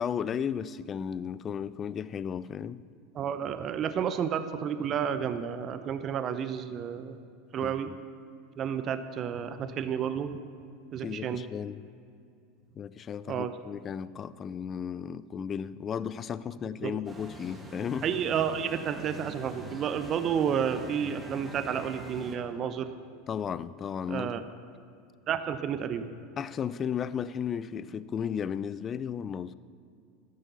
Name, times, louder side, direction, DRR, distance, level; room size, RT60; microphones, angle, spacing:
voice 1, 0.0-2.8 7.6-8.0 11.0-11.8 12.8-18.2 23.3-24.5 26.4-29.5, left 8 dB, 35° left, 0.5 m, -34 dB
voice 2, 3.1-7.2 7.5-7.9 8.6-10.4 10.9-11.4 13.3-13.5 16.8-16.9 18.0-22.9 24.1-24.4 25.3-26.2, right 8 dB, 40° right, 0.8 m, -31 dB
sound 1, 17.0-22.4, right 1 dB, 15° right, 2.1 m, -44 dB
13.0 x 10.5 x 6.9 m
hypercardioid pair, 85°, 0 cm